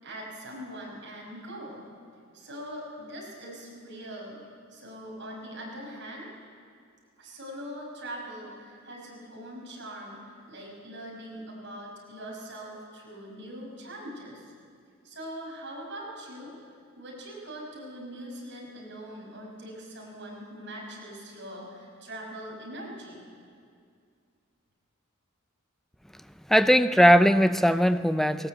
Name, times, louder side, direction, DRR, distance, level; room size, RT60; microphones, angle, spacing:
voice 1, 0.0-1.8 2.3-4.4 4.7-6.3 7.2-14.5 15.0-16.5 16.9-23.2, equal, 60° right, -2 dB, 5.9 m, -42 dB
voice 2, 26.5-28.5, equal, ahead, 11 dB, 0.5 m, -19 dB
19.0 x 18.5 x 8.0 m, 2.2 s
head